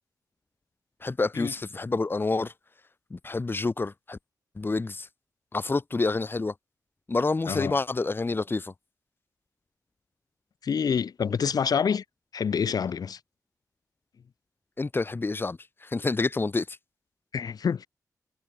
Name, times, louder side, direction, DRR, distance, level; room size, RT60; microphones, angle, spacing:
voice 1, 1.0-2.5 3.1-4.2 4.6-5.1 5.5-6.5 7.1-8.7 14.8-16.8, left 3 dB, 30° left, 3.6 m, -28 dB
voice 2, 10.6-12.0 12.3-13.2 17.3-17.9, left 6 dB, 70° left, 6.0 m, -27 dB
cardioid pair, 85°, 7 cm